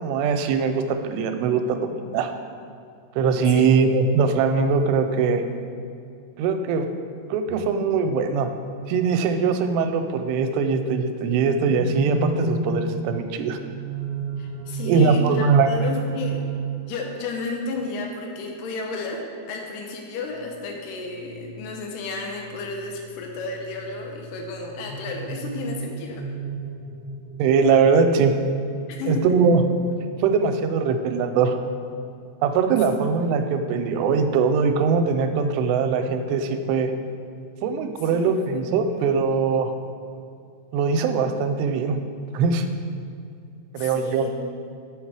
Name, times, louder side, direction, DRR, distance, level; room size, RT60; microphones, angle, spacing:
voice 1, 0.0-2.3 3.2-5.4 6.4-6.9 7.3-8.5 8.9-13.6 14.8-15.7 27.4-28.3 29.1-29.6 30.2-31.6 32.4-36.9 37.6-39.7 40.7-42.0 42.3-42.7 43.7-44.3, right 5 dB, 90° right, 7 dB, 2.7 m, -21 dB
sound 1, 11.4-17.1 20.3-28.0, right 4 dB, 45° right, 1.7 m, -33 dB
voice 2, 14.4-16.4 16.9-26.2 28.9-29.3 38.1-39.2 43.8-44.3, left 3 dB, 90° left, 1 dB, 1.9 m, -33 dB
7.1 x 5.8 x 4.8 m, 2.4 s
omnidirectional pair, 4.8 m